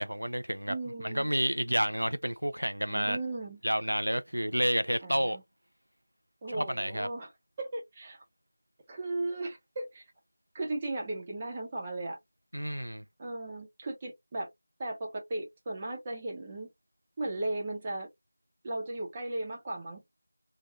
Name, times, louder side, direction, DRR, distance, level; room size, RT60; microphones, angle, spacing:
voice 1, 0.0-0.7 1.0-3.2 3.6-5.4 6.5-7.1 12.5-13.0, equal, 85° right, 0.4 m, -30 dB
voice 2, 0.7-1.3 2.9-3.6 5.0-5.4 6.4-7.3 7.6-8.2 8.9-10.0 10.5-12.2 13.2-14.5 14.8-16.7 17.2-18.1 18.6-20.0, right 2 dB, 15° right, 0.8 m, -36 dB
2.7 x 2.1 x 2.5 m
figure-of-eight pair, 170°, 0 cm